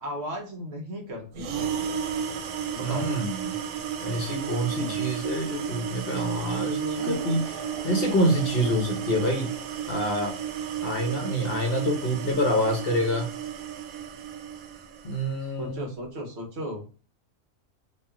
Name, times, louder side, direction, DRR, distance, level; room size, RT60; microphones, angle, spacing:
voice 1, 0.0-1.7 2.7-3.1 4.8-5.0 11.4-11.5 15.6-16.9, equal, 60° right, 2 dB, 1.0 m, -36 dB
sound 1, 1.3-15.3, right 8 dB, 90° right, 1.0 m, -33 dB
voice 2, 2.8-3.6 4.0-9.5 9.9-10.4 10.8-13.3 15.0-15.9, equal, 55° left, 2 dB, 0.8 m, -27 dB
sound 2, 7.0-10.9, left 1 dB, 5° left, 0.7 m, -43 dB
3.0 x 2.4 x 2.3 m, 0.37 s
omnidirectional pair, 1.4 m